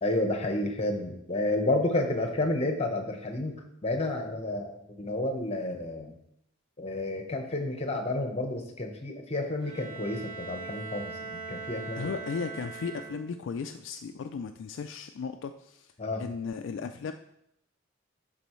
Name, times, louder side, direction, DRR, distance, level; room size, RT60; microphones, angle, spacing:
voice 1, 0.0-6.2 6.8-12.1 16.0-16.2, left 2 dB, 30° left, 4 dB, 1.0 m, -30 dB
Bowed string instrument, 9.6-13.5, right 5 dB, 30° right, 2.9 m, -41 dB
voice 2, 11.9-15.9 16.2-17.1, left 5 dB, 65° left, 7 dB, 0.3 m, -36 dB
12.0 x 4.1 x 3.1 m, 0.75 s
head